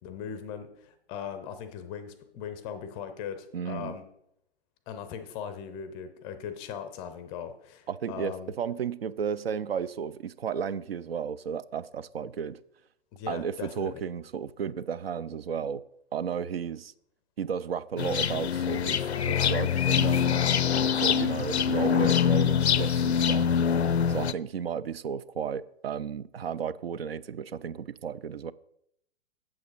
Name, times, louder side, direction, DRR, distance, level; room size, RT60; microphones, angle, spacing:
voice 1, 0.0-4.0 4.9-8.5 13.1-14.0, left 8 dB, 15° left, 0.5 m, -39 dB
voice 2, 3.5-3.9 7.9-12.6 13.3-15.8 16.1-16.9 17.4-20.5 20.9-23.5 24.1-28.5, right 7 dB, 65° right, 0.5 m, -33 dB
sound 1, 18.0-24.3, left 8 dB, 75° left, 0.5 m, -24 dB
8.5 x 7.4 x 4.5 m
figure-of-eight pair, 115°, 33 cm